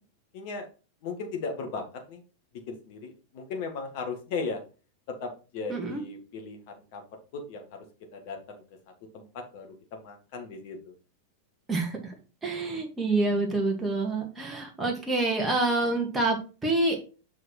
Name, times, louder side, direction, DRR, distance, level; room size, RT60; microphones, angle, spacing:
voice 1, 0.3-0.7 1.0-2.2 2.7-4.6 5.1-7.0 7.3-7.8 8.1-8.6 9.1-10.9, left 4 dB, 50° left, 4 dB, 1.7 m, -37 dB
voice 2, 5.7-6.0 11.7-12.1 12.4-16.4 16.6-17.0, right 2 dB, 10° right, 0 dB, 2.1 m, -27 dB
6.6 x 4.8 x 4.4 m, 0.34 s
figure-of-eight pair, 90°, 0 cm